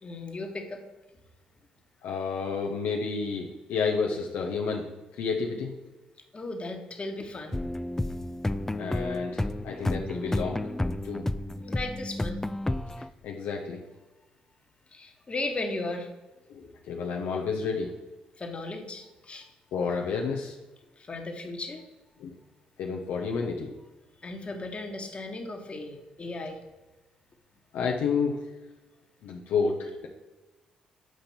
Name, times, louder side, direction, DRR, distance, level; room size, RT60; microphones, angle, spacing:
voice 1, 0.0-0.8 6.3-7.6 11.6-12.4 14.9-16.1 18.4-19.5 21.0-21.8 24.2-26.6, left 2 dB, 35° left, 4 dB, 1.4 m, -36 dB
voice 2, 2.0-5.7 8.8-10.6 11.0-11.2 13.2-13.8 16.5-17.9 19.7-20.6 22.2-22.3 22.8-23.7 27.7-28.4 29.2-30.1, left 5 dB, 70° left, 1 dB, 0.7 m, -30 dB
sound 1, 7.5-13.1, left 1 dB, 10° left, 0.4 m, -31 dB
7.6 x 5.1 x 4.3 m, 1.1 s
hypercardioid pair, 45°, 3 cm